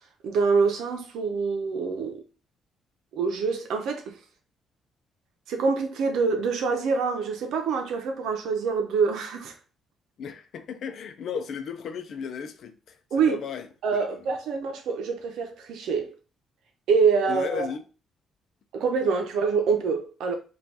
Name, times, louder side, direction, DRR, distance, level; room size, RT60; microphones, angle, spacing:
voice 1, 0.2-2.2 3.1-4.2 5.5-9.5 13.1-13.4 13.8-16.1 16.9-17.7 18.7-20.4, right 5 dB, 80° right, 0.8 m, -25 dB
voice 2, 10.2-13.7 14.1-14.3 17.3-17.8, left 7 dB, 65° left, 0.6 m, -35 dB
5.2 x 2.5 x 2.9 m
cardioid pair, 90°, 0 cm